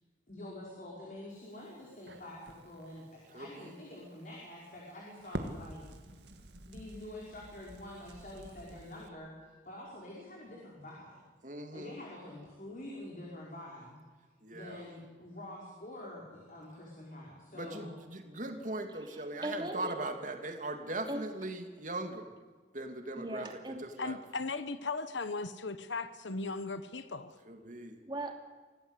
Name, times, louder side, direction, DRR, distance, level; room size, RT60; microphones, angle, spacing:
voice 1, 0.3-5.9 6.7-11.2 11.7-14.0 14.5-17.9, left 1 dB, 45° left, 5.7 m, -47 dB
Crackle, 1.3-9.1, right 1 dB, 65° right, 2.2 m, -48 dB
voice 2, 3.3-3.8 11.4-12.0 14.4-14.8 17.5-22.3 22.7-23.5 23.8-24.2 27.5-28.0, right 2 dB, 45° right, 2.8 m, -40 dB
voice 3, 18.9-19.9 21.1-21.2 23.2-23.9 28.0-28.3, right 1 dB, 25° right, 2.7 m, -39 dB
voice 4, 24.0-27.4, left 3 dB, 80° left, 1.2 m, -37 dB
25.5 x 17.5 x 8.3 m
head